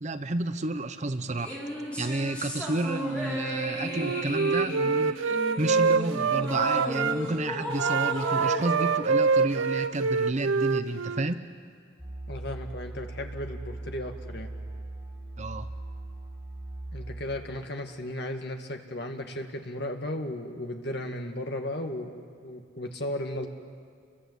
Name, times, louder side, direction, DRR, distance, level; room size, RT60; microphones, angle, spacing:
voice 1, 0.0-1.6 2.0-11.5 15.4-15.7, right 2 dB, 35° right, 10 dB, 0.6 m, -31 dB
sound 1, 1.4-10.0, left 1 dB, 5° left, 4.4 m, -35 dB
Wind instrument woodwind instrument, 3.9-7.1 7.7-11.3, right 5 dB, 80° right, 0.6 m, -26 dB
sound 2, 12.0-17.2, right 2 dB, 15° right, 6.4 m, -39 dB
voice 2, 12.3-14.5 16.9-22.1 22.4-23.5, left 1 dB, 55° left, 4 dB, 2.1 m, -35 dB
29.5 x 22.5 x 8.2 m, 2.2 s
head